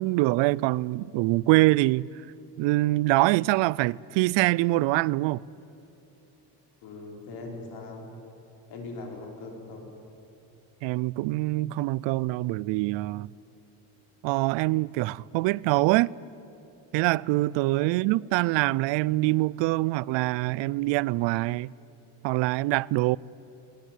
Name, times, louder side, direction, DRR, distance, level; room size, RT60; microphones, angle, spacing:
voice 1, 0.0-2.1 2.6-5.4 10.8-13.3 14.2-16.1 16.9-21.7 22.2-23.2, right 20 dB, 85° right, 0.5 m, -24 dB
voice 2, 6.8-8.1 8.7-9.9 17.8-17.9, left 3 dB, 65° left, 4.7 m, -40 dB
22.0 x 18.5 x 9.2 m
cardioid pair, 165°, 43 cm